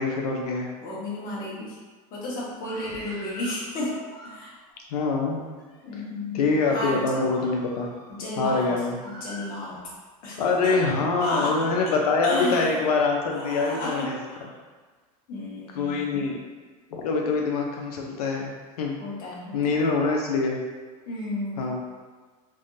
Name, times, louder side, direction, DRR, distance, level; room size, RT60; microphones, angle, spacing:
voice 1, 0.0-0.7 4.9-5.4 6.3-7.9 8.4-9.0 10.4-14.2 15.8-16.4 16.9-18.5 18.8-19.0 19.5-20.6 21.6-21.8, left 4 dB, 90° left, 0 dB, 0.6 m, -24 dB
voice 2, 0.8-1.8 2.1-4.5 5.8-7.4 8.1-8.7 9.0-9.8 10.2-10.8 11.2-11.7 12.2-12.8 13.3-14.5 15.3-16.2 19.0-19.9 21.1-21.6, left 2 dB, 50° left, -6 dB, 1.2 m, -33 dB
Screaming, 2.5-3.6 4.0-4.8 5.4-6.0 6.5-6.7 7.2-8.2 9.0-10.0, equal, 20° left, 0.9 m, -44 dB
3.4 x 2.2 x 2.6 m, 1.4 s
supercardioid pair, 110°, 19 cm